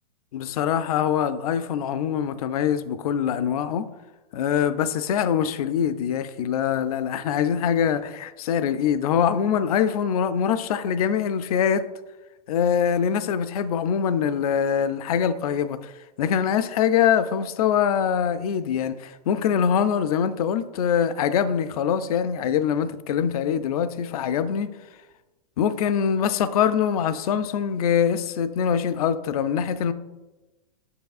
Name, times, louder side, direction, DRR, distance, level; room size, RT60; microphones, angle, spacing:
voice 1, 0.3-3.9 4.3-11.8 12.5-15.9 16.2-24.7 25.6-29.9, left 8 dB, 60° left, 0.5 m, -23 dB
6.8 x 5.9 x 2.4 m
supercardioid pair, 170°, 21 cm